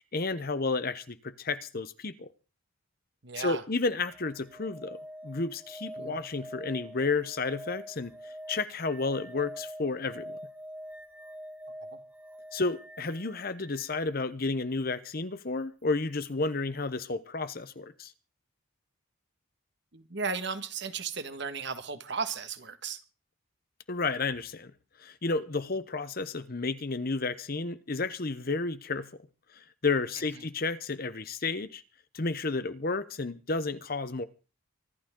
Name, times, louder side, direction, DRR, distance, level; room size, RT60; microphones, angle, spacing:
voice 1, 0.0-2.3 3.4-10.4 12.5-18.1 23.9-24.7 25.0-29.2 29.5-31.8 32.1-34.2, left 3 dB, 45° left, 0.9 m, -32 dB
voice 2, 3.2-3.6 6.0-6.2 19.9-23.0, right 5 dB, 55° right, 1.6 m, -35 dB
sound 1, 4.1-13.9 16.2-16.3, equal, 5° right, 1.6 m, -45 dB
25.0 x 12.0 x 3.8 m
head